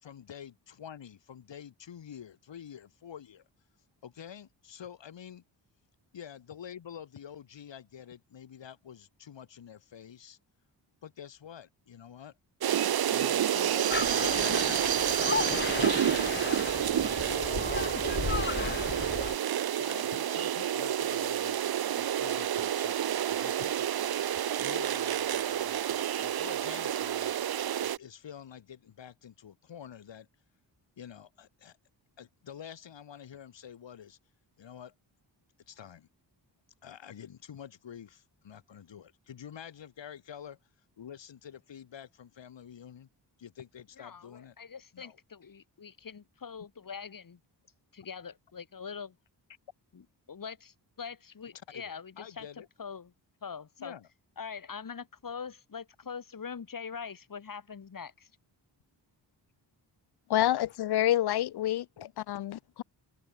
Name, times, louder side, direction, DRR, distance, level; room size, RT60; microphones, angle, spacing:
voice 1, 0.0-3.4 4.0-5.4 6.1-10.4 11.0-12.4 13.1-16.9 17.2-18.7 19.8-24.1 24.6-30.3 31.0-31.8 32.2-34.2 34.6-34.9 35.7-36.1 36.8-40.6 41.0-43.1 43.4-44.6 44.9-45.2 51.5-52.7 53.8-54.1 60.4-60.5 62.0-62.4, left 9 dB, 80° left, 3.8 m, -48 dB
sound 1, 12.6-28.0, right 10 dB, 55° right, 0.7 m, -29 dB
sound 2, 13.9-19.4, left 5 dB, 25° left, 0.7 m, -34 dB
voice 2, 44.0-47.4 47.9-49.2 49.9-52.5 52.8-53.1 53.4-53.9 54.4-58.3, left 6 dB, 50° left, 6.3 m, -43 dB
voice 3, 60.3-61.9 62.3-62.8, left 13 dB, 65° left, 0.6 m, -27 dB
open air
wide cardioid pair, 160°, 43 cm